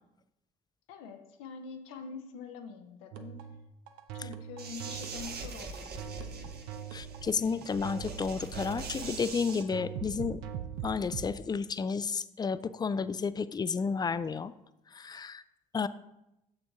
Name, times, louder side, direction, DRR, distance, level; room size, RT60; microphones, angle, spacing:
voice 1, 0.9-3.5 4.1-6.6, left 5 dB, 70° left, 5 dB, 0.8 m, -45 dB
sound 1, 3.1-11.3, right 8 dB, 70° right, 0.6 m, -42 dB
sound 2, 4.6-9.6, right 4 dB, 50° right, 1.0 m, -43 dB
voice 2, 6.9-10.4 10.8-14.5 14.9-15.4 15.7-15.9, left 5 dB, 20° left, 15 dB, 0.4 m, -32 dB
7.0 x 6.4 x 3.6 m, 0.88 s
hypercardioid pair, 50°, 21 cm